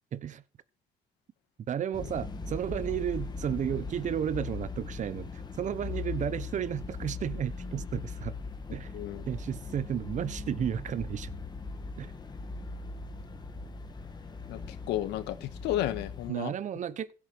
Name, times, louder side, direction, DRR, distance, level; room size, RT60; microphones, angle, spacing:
voice 1, 0.1-0.4 1.7-8.4 8.7-8.9 9.3-11.3 12.0-12.1 16.3-17.1, right 9 dB, 45° right, 1.1 m, -33 dB
sound 1, 1.9-16.3, left 4 dB, 25° left, 2.3 m, -39 dB
voice 2, 14.9-16.5, left 13 dB, 85° left, 1.9 m, -32 dB
16.0 x 8.6 x 6.2 m
cardioid pair, 110°, 17 cm